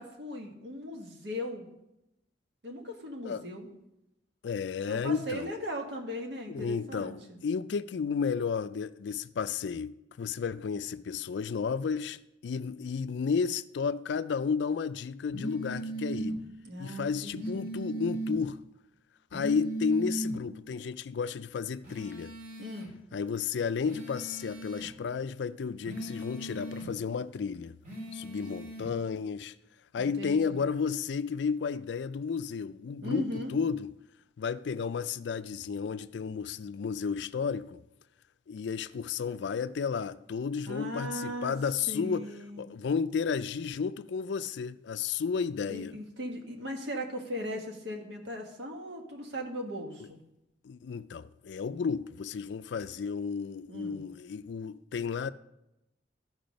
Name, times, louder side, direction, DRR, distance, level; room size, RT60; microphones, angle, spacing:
voice 1, 0.0-1.7 2.6-3.7 4.9-7.4 16.6-17.7 22.6-22.9 30.0-30.6 33.0-33.5 40.7-41.5 41.9-42.6 45.7-50.2 53.7-54.0, equal, 70° right, 1.5 m, -38 dB
voice 2, 4.4-5.5 6.5-16.4 16.8-18.6 19.3-22.3 23.1-27.8 28.1-29.5 29.9-33.9 34.4-37.8 38.5-42.3 42.6-45.9 50.6-55.3, left 6 dB, 70° left, 0.4 m, -32 dB
sound 1, 15.3-16.4 17.3-18.4 19.3-20.4 21.8-22.9 23.8-24.9 25.8-26.9 27.8-28.9, right 1 dB, 50° right, 2.3 m, -37 dB
13.5 x 4.8 x 5.2 m
head